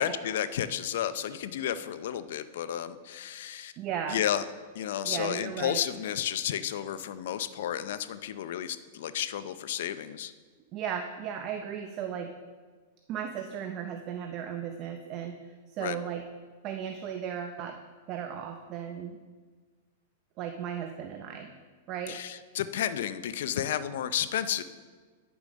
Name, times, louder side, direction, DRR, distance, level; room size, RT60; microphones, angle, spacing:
voice 1, 0.0-3.7 4.1-4.4 4.7-10.3 15.8-16.0 22.1-24.6, left 10 dB, 65° left, 13 dB, 0.5 m, -32 dB
voice 2, 3.8-4.2 5.0-5.8 10.7-12.3 13.1-15.4 15.8-16.2 16.6-17.8 18.1-19.2 20.4-21.5 21.9-22.2, right 8 dB, 35° right, 5 dB, 0.6 m, -35 dB
9.8 x 7.0 x 5.1 m, 1.5 s
supercardioid pair, 150°, 0 cm